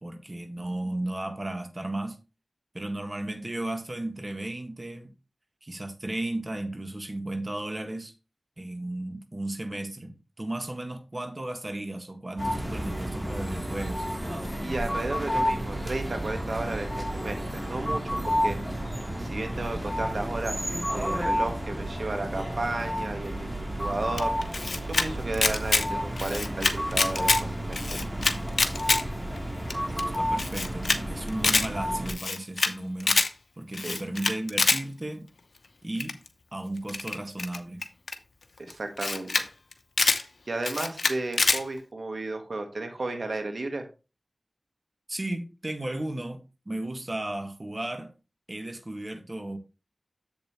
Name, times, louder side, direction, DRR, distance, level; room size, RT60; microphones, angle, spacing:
voice 1, 0.0-2.2 2.7-5.1 5.6-8.1 8.6-14.1 29.9-33.2 33.6-35.3 35.8-36.2 36.5-37.8 45.1-48.1 48.5-49.6, right 1 dB, 40° right, 1.6 m, -34 dB
sound 1, 12.4-32.1, equal, 25° right, 3.3 m, -31 dB
voice 2, 14.6-18.6 19.2-23.5 23.8-24.3 24.9-28.0 33.8-34.0 38.6-39.5 40.1-43.9, right 2 dB, 80° right, 1.6 m, -33 dB
Camera, 24.2-25.1 25.3-25.8 26.2-27.4 27.7-29.0 29.4-29.5 29.7-29.8 30.0-30.1 30.4-31.0 31.3-31.7 32.1-32.7 33.0-33.3 33.7-34.8 36.0-36.3 36.9-38.1 38.7-38.8 39.0-39.4 39.7-40.2 40.6-41.6, left 3 dB, 85° left, 0.8 m, -25 dB
7.6 x 7.3 x 3.1 m
wide cardioid pair, 40°, 0 cm